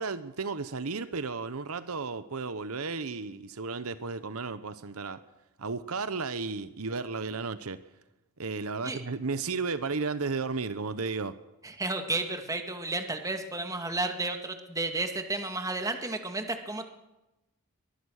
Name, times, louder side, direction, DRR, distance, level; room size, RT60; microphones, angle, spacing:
voice 1, 0.0-5.2 5.6-7.8 8.4-11.3, right 4 dB, 75° right, 13 dB, 1.0 m, -33 dB
voice 2, 11.6-16.8, right 2 dB, 15° right, 5 dB, 2.2 m, -32 dB
23.0 x 19.5 x 6.5 m, 0.99 s
head